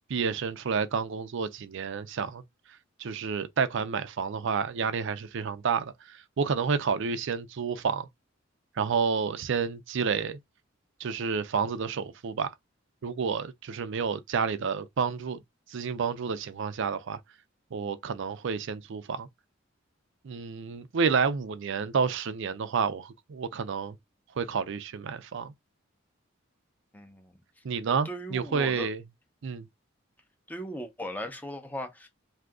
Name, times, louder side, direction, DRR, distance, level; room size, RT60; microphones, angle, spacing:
voice 1, 0.1-2.4 3.0-8.1 8.8-10.4 11.0-12.5 13.0-15.4 15.7-17.2 17.7-19.3 20.2-24.0 24.4-25.5 27.6-29.0 29.4-29.7, right 5 dB, 65° right, 0.5 m, -30 dB
voice 2, 26.9-27.4 28.0-28.9 30.5-32.1, equal, 10° left, 0.7 m, -38 dB
2.7 x 2.4 x 3.5 m
head